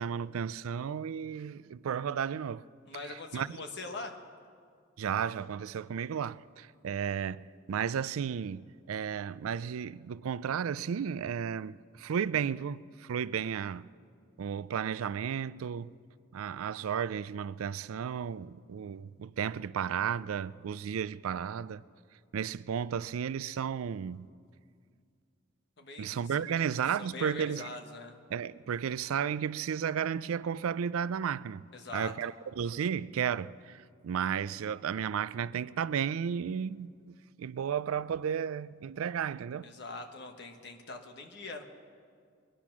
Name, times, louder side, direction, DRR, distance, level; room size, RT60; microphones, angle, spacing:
voice 1, 0.0-2.6 3.3-3.5 5.0-13.9 14.4-15.9 16.3-21.8 22.3-24.3 26.0-27.7 28.3-31.6 31.9-39.6, right 7 dB, 85° right, 0.4 m, -33 dB
voice 2, 2.9-4.1 25.8-26.6 27.0-28.2 31.7-32.1 39.6-41.6, left 3 dB, 55° left, 1.4 m, -43 dB
22.0 x 10.0 x 6.0 m
head